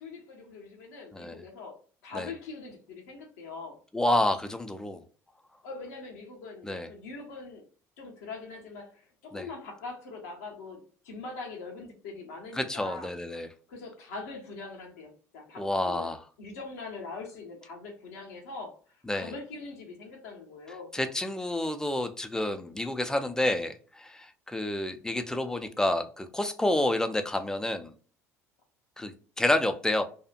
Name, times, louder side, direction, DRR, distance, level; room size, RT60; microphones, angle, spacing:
voice 1, 0.0-3.8 5.6-7.6 8.0-13.1 13.7-16.1 16.4-18.8 19.1-20.9, left 3 dB, 70° left, 0 dB, 0.9 m, -42 dB
voice 2, 3.9-5.0 6.6-6.9 9.3-9.4 12.6-13.5 15.6-16.2 19.1-19.3 20.9-23.7 24.0-24.2 24.5-27.9 29.0-30.0, left 1 dB, 5° left, 8 dB, 0.5 m, -29 dB
2.8 x 2.4 x 2.2 m, 0.40 s
figure-of-eight pair, 60°, 8 cm